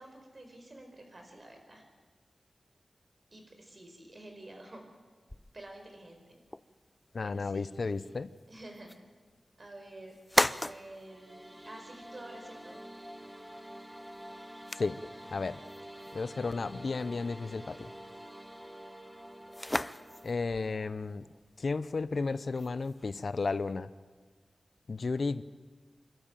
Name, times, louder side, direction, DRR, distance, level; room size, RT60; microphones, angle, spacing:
voice 1, 0.0-1.8 3.3-4.8 5.5-6.4 7.2-7.7 8.5-8.9 9.6-10.2 10.6-12.8, right 1 dB, 40° right, 3 dB, 4.8 m, -49 dB
sound 1, 5.3-23.7, left 1 dB, 15° left, 0.5 m, -39 dB
voice 2, 7.1-8.3 14.8-15.0 15.3-15.6 16.1-17.9 20.2-21.3 21.6-23.9 24.9-25.4, left 4 dB, 60° left, 15 dB, 0.6 m, -33 dB
sound 2, 10.9-21.0, equal, 10° right, 1.2 m, -48 dB
27.5 x 12.5 x 9.1 m, 1.4 s
wide cardioid pair, 90°, 0 cm